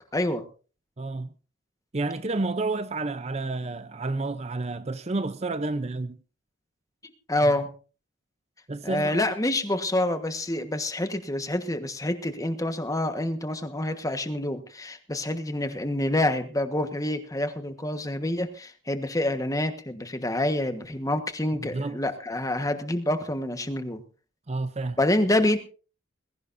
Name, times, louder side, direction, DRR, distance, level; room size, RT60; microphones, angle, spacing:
voice 1, 0.1-0.4 7.0-7.7 8.8-24.0 25.0-25.6, left 1 dB, 15° left, 1.4 m, -27 dB
voice 2, 1.0-1.3 1.9-6.2 8.7-9.2 21.6-22.0 24.5-25.0, right 3 dB, 35° right, 0.6 m, -30 dB
21.0 x 16.0 x 2.7 m
head